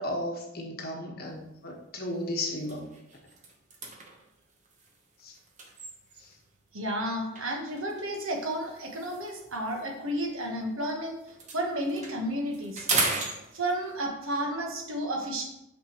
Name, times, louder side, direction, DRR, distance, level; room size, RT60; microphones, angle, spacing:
voice 1, 0.0-2.8 5.2-5.3 6.2-6.3, left 1 dB, 50° left, 0 dB, 1.2 m, -34 dB
sound 1, 1.4-1.6 2.1-2.2 2.6-6.5 7.4-10.9 11.2-14.1, right 3 dB, 35° right, 0.9 m, -36 dB
voice 2, 6.7-11.2 11.5-12.9 13.5-15.5, right 1 dB, 80° right, 2 dB, 1.2 m, -32 dB
5.9 x 5.9 x 2.9 m, 0.84 s
head